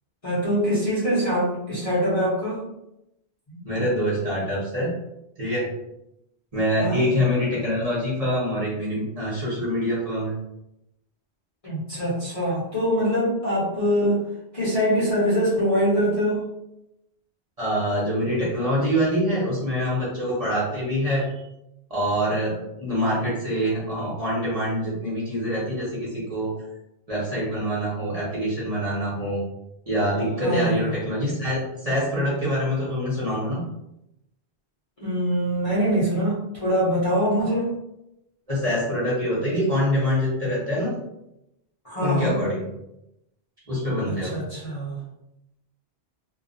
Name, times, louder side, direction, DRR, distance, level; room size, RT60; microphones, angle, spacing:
voice 1, 0.2-2.6 3.5-3.7 6.8-7.0 11.6-14.2 14.5-16.5 30.4-30.9 35.0-37.7 41.8-42.3 44.1-44.9, equal, 35° left, -9 dB, 0.9 m, -23 dB
voice 2, 3.6-4.9 5.4-5.7 6.5-10.3 17.6-21.3 21.9-26.5 27.1-29.4 29.9-33.6 37.4-37.5 38.5-40.9 42.0-42.6 43.7-44.4, equal, 35° right, -8 dB, 0.9 m, -25 dB
2.4 x 2.3 x 2.5 m, 0.86 s
omnidirectional pair, 1.1 m